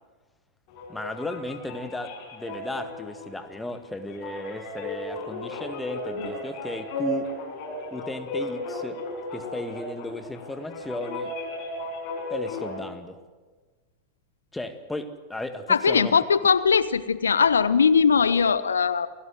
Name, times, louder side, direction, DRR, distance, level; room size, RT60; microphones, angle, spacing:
sound 1, 0.7-12.8, left 1 dB, 45° left, 6.0 m, -35 dB
voice 1, 0.9-7.3 7.9-9.0 9.3-11.3 12.3-13.2 14.5-16.1, left 1 dB, 5° left, 8 dB, 1.9 m, -35 dB
voice 2, 15.7-19.1, left 6 dB, 70° left, 17 dB, 0.6 m, -20 dB
28.5 x 17.0 x 7.7 m, 1.4 s
figure-of-eight pair, 90°, 0 cm